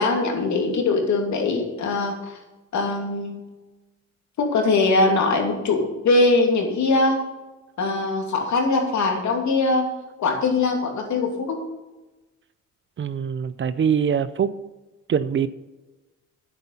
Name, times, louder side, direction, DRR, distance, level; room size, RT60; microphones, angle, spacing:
voice 1, 0.0-2.4 2.7-3.4 4.4-7.2 7.8-9.9 10.2-11.6, left 3 dB, 70° left, 2 dB, 2.8 m, -21 dB
voice 2, 13.0-14.6 15.1-15.5, right 7 dB, 40° right, 15 dB, 0.6 m, -23 dB
9.8 x 8.4 x 5.7 m, 1.1 s
cardioid pair, 90°, 30 cm